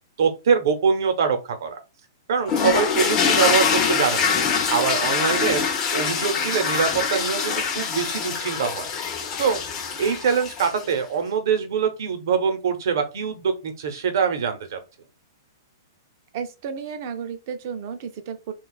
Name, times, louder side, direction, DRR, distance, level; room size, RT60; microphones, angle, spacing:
voice 1, 0.2-1.8 2.3-4.4 4.7-5.6 5.9-8.9 9.4-9.6 10.0-14.8, right 6 dB, 60° right, 0.8 m, -23 dB
sound 1, 2.5-10.9, left 6 dB, 20° left, 0.5 m, -24 dB
voice 2, 16.3-18.5, right 7 dB, 35° right, 0.5 m, -33 dB
2.5 x 2.3 x 3.9 m
hypercardioid pair, 170°, 2 cm